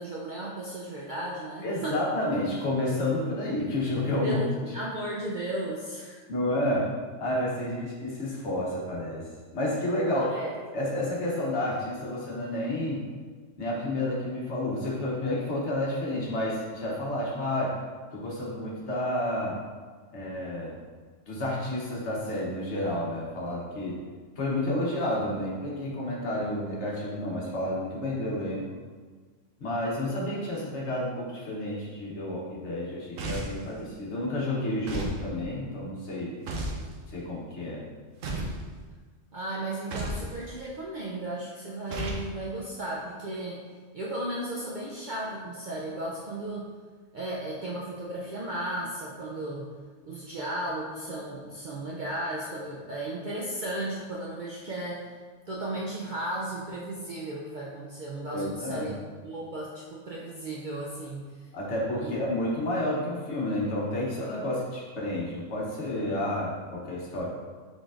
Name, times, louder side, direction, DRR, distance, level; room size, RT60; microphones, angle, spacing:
voice 1, 0.0-2.0 4.2-6.2 10.1-10.5 39.3-43.6 43.9-46.7 47.1-49.7 50.0-55.1 55.5-59.0 59.2-61.3 62.0-62.2, right 1 dB, 60° right, -4 dB, 0.5 m, -35 dB
voice 2, 1.6-4.4 6.3-6.9 7.2-9.3 9.5-10.4 10.7-13.0 13.6-17.8 18.1-19.6 20.1-20.7 21.3-24.0 24.4-28.7 29.6-36.3 37.1-37.8 58.3-59.0 61.5-67.3, left 1 dB, 65° left, -4 dB, 1.2 m, -30 dB
sound 1, 33.2-33.7 34.9-35.2 36.5-36.8 38.2-38.6 39.9-40.3 41.9-42.3, right 2 dB, 90° right, 1.1 m, -32 dB
4.8 x 4.0 x 2.5 m, 1.5 s
omnidirectional pair, 1.3 m